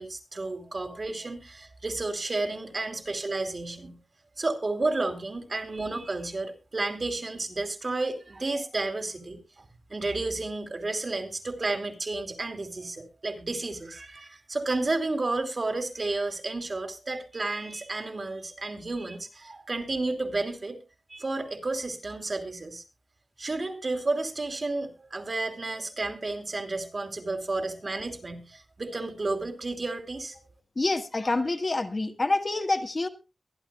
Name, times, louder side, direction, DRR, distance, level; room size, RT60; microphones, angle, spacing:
voice 1, 0.0-4.0 4.4-9.6 9.9-20.8 21.1-22.8 23.4-30.4, right 2 dB, 45° right, 6 dB, 3.0 m, -32 dB
voice 2, 30.7-33.1, left 2 dB, 40° left, 6 dB, 1.5 m, -27 dB
23.0 x 11.5 x 2.3 m, 0.28 s
wide cardioid pair, 105°, 0 cm